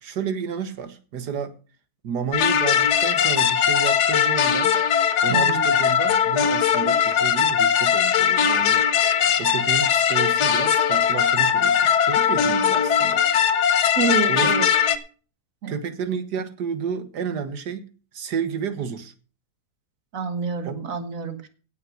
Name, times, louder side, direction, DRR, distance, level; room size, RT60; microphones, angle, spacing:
voice 1, 0.0-1.6 2.0-4.7 5.2-13.2 13.8-14.0 14.3-14.5 15.7-17.9 18.1-19.1 20.6-20.8, right 6 dB, 80° right, 10 dB, 1.9 m, -31 dB
sound 1, 2.3-15.0, left 8 dB, 75° left, 1.6 m, -20 dB
voice 2, 5.3-5.7 14.0-14.7 15.6-15.8 20.1-21.5, right 5 dB, 55° right, 8 dB, 1.9 m, -27 dB
17.0 x 6.0 x 6.4 m, 0.39 s
omnidirectional pair, 1.7 m